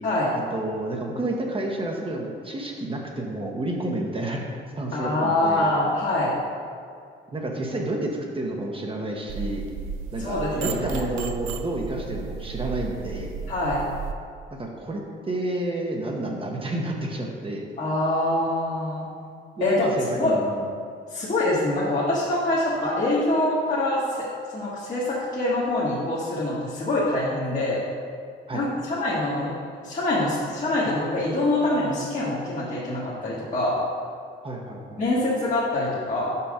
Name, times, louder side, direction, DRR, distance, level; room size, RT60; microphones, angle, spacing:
voice 1, 0.5-4.5 4.8-5.7 7.3-9.6 10.1-13.3 14.6-17.6 19.6-20.6 28.5-28.6 34.4-35.0, right 1 dB, 25° right, 0 dB, 1.0 m, -30 dB
voice 2, 4.9-6.3 10.2-11.1 13.5-13.8 17.8-19.0 19.6-19.9 20.2-20.4 21.1-27.8 28.5-29.5 29.8-33.8 35.0-36.3, left 1 dB, 40° left, -8 dB, 1.4 m, -25 dB
sound 1, 9.3-14.1, right 5 dB, 85° right, 0.5 m, -34 dB
5.6 x 5.2 x 5.0 m, 2.3 s
cardioid pair, 90°, 20 cm